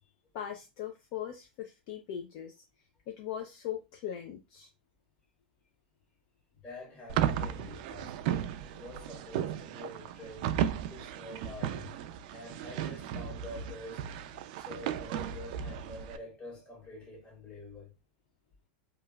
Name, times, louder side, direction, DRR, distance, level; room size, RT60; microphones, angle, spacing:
voice 1, 0.3-2.5 3.1-4.7, left 10 dB, 50° left, 0.5 m, -39 dB
voice 2, 6.5-10.6 10.9-12.0 12.3-14.1 14.6-17.9, left 2 dB, 25° left, 1.4 m, -47 dB
sound 1, 7.1-16.2, right 10 dB, 55° right, 0.3 m, -35 dB
3.1 x 2.3 x 2.3 m
supercardioid pair, 140°, 5 cm